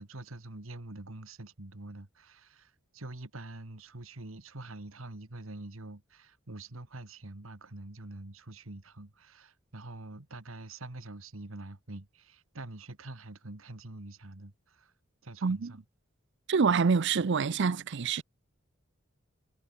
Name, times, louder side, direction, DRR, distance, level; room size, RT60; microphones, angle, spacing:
voice 1, 0.0-14.9 15.2-15.8 18.2-18.3, right 2 dB, 85° right, 2.0 m, -45 dB
voice 2, 16.5-18.2, right 5 dB, 60° right, 0.5 m, -26 dB
head